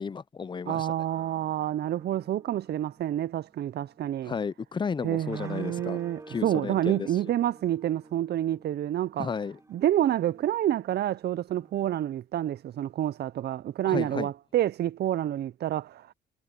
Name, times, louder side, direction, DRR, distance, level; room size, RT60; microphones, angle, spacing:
voice 1, 0.0-0.9 4.3-6.0 6.3-7.1 9.2-9.6 13.9-14.3, left 5 dB, 25° left, 0.5 m, -33 dB
voice 2, 0.7-4.4 5.0-9.3 9.7-16.1, right 12 dB, 55° right, 0.5 m, -28 dB
sound 1, 1.1-12.2, right 2 dB, 15° right, 2.3 m, -52 dB
cardioid pair, 90°, 20 cm